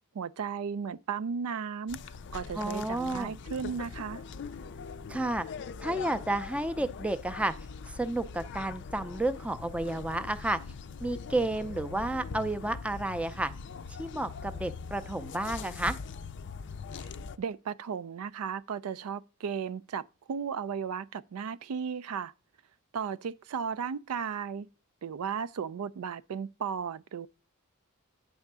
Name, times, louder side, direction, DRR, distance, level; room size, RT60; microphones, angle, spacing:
voice 1, 0.1-2.0 2.3-4.2 17.0-17.1 17.4-22.3 22.9-24.7 25.0-27.3, right 6 dB, 70° right, 0.4 m, -35 dB
sound 1, 1.9-17.4, left 5 dB, 55° left, 0.4 m, -42 dB
voice 2, 2.5-3.3 5.1-5.5 5.8-7.5 7.9-10.6 11.0-13.5 13.9-16.0, right 2 dB, 5° right, 0.4 m, -31 dB
9.2 x 3.5 x 6.6 m
head